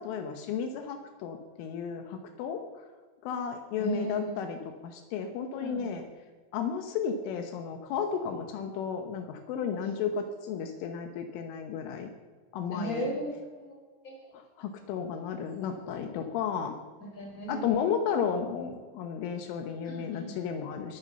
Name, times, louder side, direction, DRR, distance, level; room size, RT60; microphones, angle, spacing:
voice 1, 0.0-2.9 3.2-4.6 4.8-6.0 6.5-12.1 12.5-13.1 14.6-16.8 17.5-21.0, left 7 dB, 80° left, 6 dB, 3.5 m, -33 dB
voice 2, 3.8-4.4 5.5-6.0 9.7-9.9 12.7-13.8 14.0-14.2 17.0-17.9 19.8-20.4, right 1 dB, 20° left, -1 dB, 4.5 m, -36 dB
21.0 x 9.4 x 5.7 m, 1.4 s
omnidirectional pair, 5.7 m